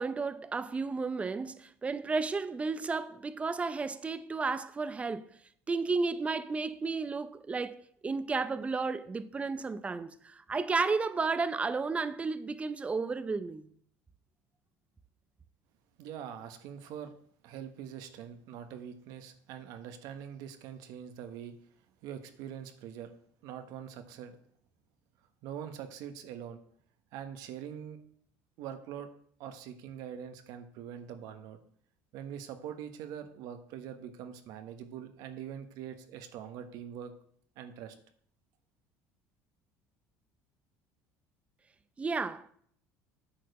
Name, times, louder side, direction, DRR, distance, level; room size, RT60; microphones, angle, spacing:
voice 1, 0.0-5.2 5.7-13.7 42.0-42.5, right 4 dB, 20° right, 0.6 m, -33 dB
voice 2, 16.0-17.1 17.4-21.5 22.0-23.1 23.4-24.4 25.4-26.6 27.1-28.0 28.6-29.1 29.4-31.6 32.1-37.1 37.6-38.0, right 9 dB, 70° right, 1.2 m, -43 dB
8.7 x 4.9 x 6.6 m
cardioid pair, 115°, 6 cm